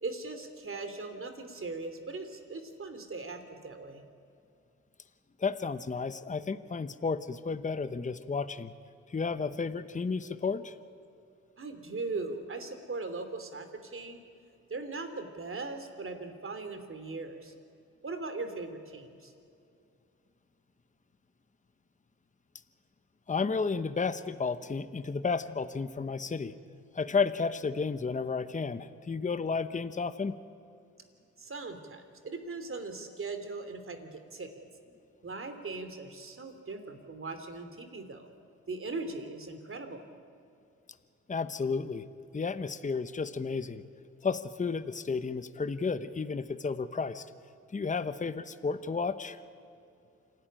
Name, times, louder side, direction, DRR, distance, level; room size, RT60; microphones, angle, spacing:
voice 1, 0.0-4.0 11.6-14.2 14.7-17.5 18.0-19.3 31.4-34.6 35.2-38.3 38.7-40.0, right 3 dB, 40° right, 8 dB, 3.2 m, -39 dB
voice 2, 5.4-8.7 9.1-10.7 23.3-26.5 26.9-30.3 41.3-42.0 42.3-43.8 44.2-47.3 47.7-49.4, left 4 dB, 25° left, 12 dB, 1.0 m, -32 dB
27.0 x 12.5 x 10.0 m, 2.5 s
supercardioid pair, 60°, 32 cm